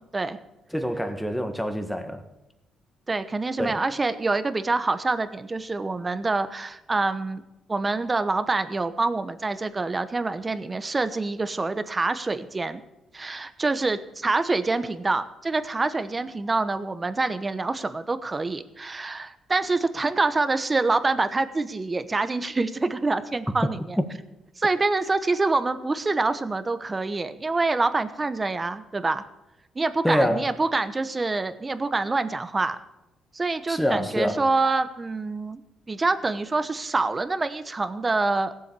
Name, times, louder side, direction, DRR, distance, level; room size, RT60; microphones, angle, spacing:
voice 1, 0.7-2.2 3.6-3.8 30.0-30.5 33.7-34.4, equal, 5° left, 7 dB, 1.5 m, -25 dB
voice 2, 3.1-7.4 7.7-12.8 13.1-24.0 24.6-29.2 29.7-32.8 33.3-35.6 35.9-38.5, right 3 dB, 25° right, 11 dB, 1.0 m, -26 dB
17.0 x 7.7 x 6.9 m, 0.95 s
cardioid pair, 90°, 0 cm